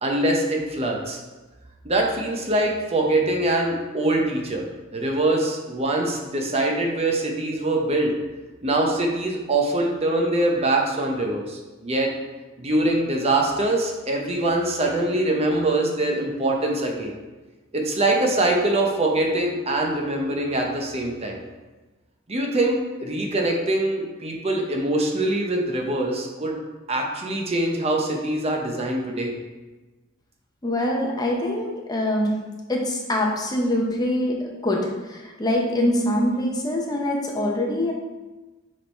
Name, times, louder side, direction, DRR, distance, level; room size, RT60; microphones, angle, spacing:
voice 1, 0.0-1.2 1.8-4.6 4.9-8.1 8.6-12.1 12.6-17.2 17.7-21.4 22.3-26.6 26.9-29.3, right 2 dB, 30° right, 1 dB, 0.7 m, -23 dB
voice 2, 30.6-32.3 32.7-37.9, left 1 dB, 20° left, -1 dB, 0.8 m, -24 dB
6.4 x 3.5 x 4.4 m, 1.2 s
head